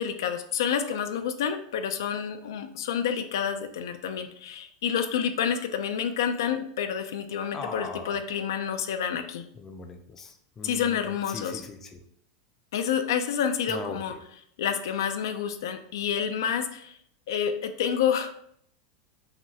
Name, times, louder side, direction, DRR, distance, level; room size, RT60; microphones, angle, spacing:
voice 1, 0.0-9.5 10.6-11.6 12.7-14.1 14.6-17.0 17.3-18.4, left 8 dB, 80° left, 8 dB, 0.4 m, -29 dB
voice 2, 7.5-8.1 9.6-11.1 11.3-12.0 13.7-14.0, left 4 dB, 20° left, 4 dB, 0.4 m, -39 dB
5.7 x 2.3 x 2.8 m, 0.68 s
supercardioid pair, 150°, 2 cm